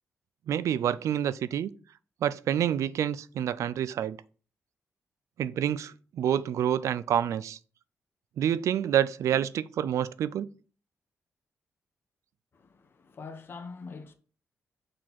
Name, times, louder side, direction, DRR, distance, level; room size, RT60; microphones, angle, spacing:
voice 1, 0.5-1.7 2.2-4.2 5.4-7.6 8.4-10.5, right 10 dB, 85° right, 0.4 m, -28 dB
voice 2, 12.5-14.1, left 4 dB, 45° left, 1.0 m, -44 dB
6.3 x 4.6 x 4.1 m
wide cardioid pair, 135°, 5 cm